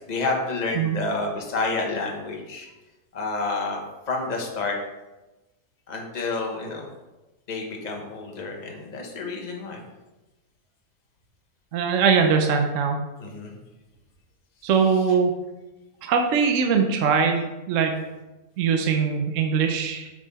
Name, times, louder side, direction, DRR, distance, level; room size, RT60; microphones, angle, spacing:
voice 1, 0.1-2.7 3.1-3.8 4.1-4.8 5.9-6.9 7.5-9.8 13.2-13.5, left 3 dB, 30° left, 1 dB, 1.1 m, -29 dB
voice 2, 11.7-13.0 14.6-15.3 16.0-17.9 18.6-20.1, right 6 dB, 60° right, 4 dB, 1.0 m, -21 dB
6.3 x 5.7 x 4.1 m, 1.1 s
omnidirectional pair, 1.6 m